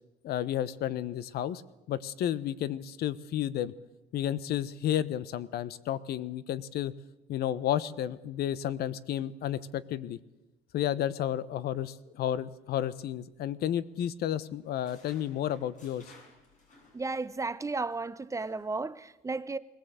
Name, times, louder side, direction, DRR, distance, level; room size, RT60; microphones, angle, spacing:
voice 1, 0.2-1.6 1.9-3.7 4.1-6.9 7.3-10.2 10.7-16.0, left 11 dB, 70° left, 1.0 m, -32 dB
sound 1, 13.3-14.1 14.4-17.4 17.7-17.9 18.4-18.6, left 3 dB, 50° left, 7.3 m, -59 dB
voice 2, 16.9-19.6, right 3 dB, 20° right, 0.7 m, -34 dB
22.0 x 17.0 x 8.2 m
cardioid pair, 110°, 17 cm